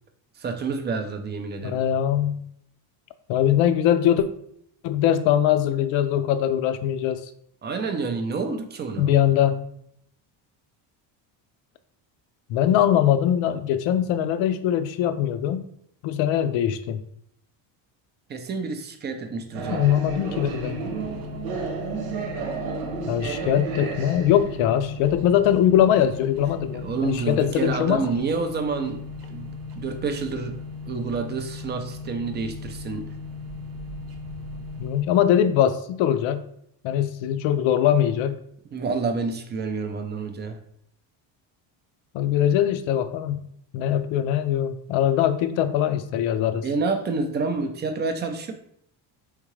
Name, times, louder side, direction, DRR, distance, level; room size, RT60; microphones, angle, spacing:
voice 1, 0.4-1.8 7.6-9.1 18.3-19.8 26.8-29.0 29.3-30.6 30.9-33.1 38.7-40.6 46.6-48.5, right 4 dB, 25° right, 6 dB, 0.3 m, -28 dB
voice 2, 1.6-2.5 3.3-4.3 4.8-7.2 9.0-9.6 12.5-15.6 16.0-17.0 19.7-20.8 23.1-28.0 34.8-36.5 36.8-38.4 42.1-43.4 43.7-46.7, left 10 dB, 80° left, 10 dB, 0.6 m, -22 dB
sound 1, 19.5-35.6, left 5 dB, 50° right, 0.8 m, -38 dB
sound 2, 19.5-34.9, right 5 dB, 90° right, 1.0 m, -36 dB
4.5 x 3.7 x 3.1 m, 0.70 s
cardioid pair, 155°, 46 cm